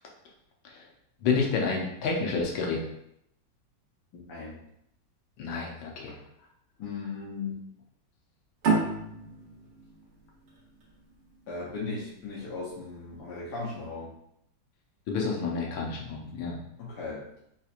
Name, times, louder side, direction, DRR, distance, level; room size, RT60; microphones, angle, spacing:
voice 1, 1.2-2.8 5.4-6.2 15.1-16.6, left 4 dB, 85° left, -1 dB, 1.6 m, -29 dB
voice 2, 4.1-4.6 6.8-7.6 11.5-14.1 16.8-17.2, left 4 dB, 65° left, -6 dB, 1.3 m, -37 dB
sound 1, 8.6-11.8, right 4 dB, 70° right, 1.6 m, -30 dB
4.3 x 2.9 x 2.4 m, 0.76 s
omnidirectional pair, 2.1 m